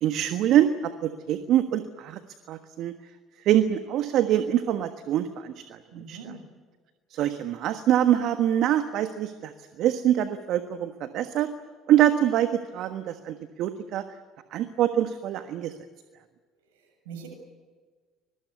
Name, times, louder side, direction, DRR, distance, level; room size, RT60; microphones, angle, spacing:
voice 1, 0.0-2.2 2.5-2.9 3.4-5.8 6.1-6.2 7.1-9.5 9.8-11.5 11.9-14.0 14.5-15.7, right 11 dB, 60° right, 9 dB, 1.4 m, -24 dB
voice 2, 5.9-6.4 16.7-17.3, right 5 dB, 80° right, 3 dB, 7.9 m, -43 dB
25.0 x 22.0 x 8.3 m, 1.4 s
hypercardioid pair, 60°, 0 cm